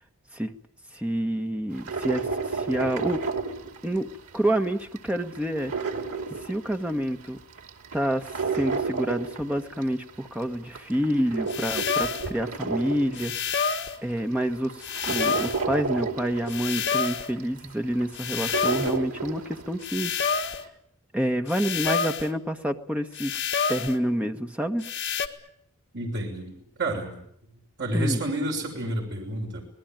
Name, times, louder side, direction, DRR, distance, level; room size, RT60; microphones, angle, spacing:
voice 1, 0.9-3.2 3.8-4.1 4.3-5.7 6.4-7.4 7.9-8.3 8.5-13.3 14.0-20.1 21.1-23.4 23.7-24.9 27.9-28.2, equal, 5° right, 6 dB, 1.4 m, -28 dB
sound 1, 1.7-4.4 4.7-7.1 7.5-10.1 10.5-13.6 14.2-14.3 14.6-19.8 20.2-20.3, right 4 dB, 90° right, 2.8 m, -32 dB
sound 2, 11.5-12.3 13.2-14.0 14.8-15.7 16.5-17.3 18.2-19.0 19.8-20.6 21.5-22.3 23.2-24.0 24.8-25.3, left 6 dB, 55° left, 1.8 m, -28 dB
voice 2, 25.9-27.2 27.8-29.6, right 1 dB, 55° right, 1 dB, 6.4 m, -29 dB
25.5 x 19.5 x 9.2 m, 0.69 s
head